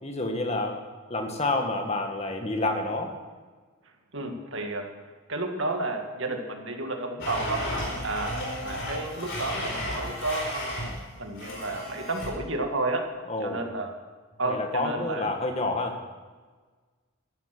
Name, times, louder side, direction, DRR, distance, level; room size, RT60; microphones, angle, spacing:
voice 1, 0.0-0.8 1.1-3.1 13.3-13.7 14.5-16.0, left 2 dB, 30° left, 3 dB, 1.8 m, -29 dB
voice 2, 4.1-4.9 5.3-7.7 8.0-10.9 11.2-13.1 13.4-13.9 14.4-15.3, right 2 dB, 60° right, 3 dB, 2.1 m, -31 dB
Domestic sounds home sounds, 7.2-11.0 11.4-12.3, left 1 dB, 55° left, 4.9 m, -33 dB
14.0 x 12.0 x 6.2 m, 1.4 s
head